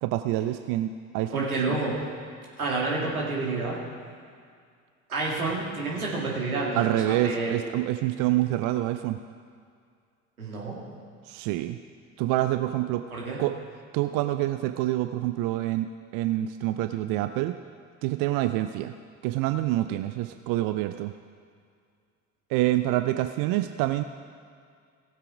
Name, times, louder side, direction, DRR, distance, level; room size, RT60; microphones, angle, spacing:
voice 1, 0.0-1.8 6.7-9.2 11.3-11.8 12.2-13.0 13.4-13.6 13.9-15.9 16.1-17.6 18.0-18.9 19.2-21.1 22.5-24.0, right 15 dB, 50° right, 10 dB, 0.6 m, -27 dB
voice 2, 1.3-2.0 2.6-3.8 5.1-7.6 10.4-10.8 13.1-13.4, right 3 dB, 85° right, -4 dB, 2.2 m, -29 dB
17.0 x 7.5 x 4.9 m, 2.2 s
figure-of-eight pair, 55°, 42 cm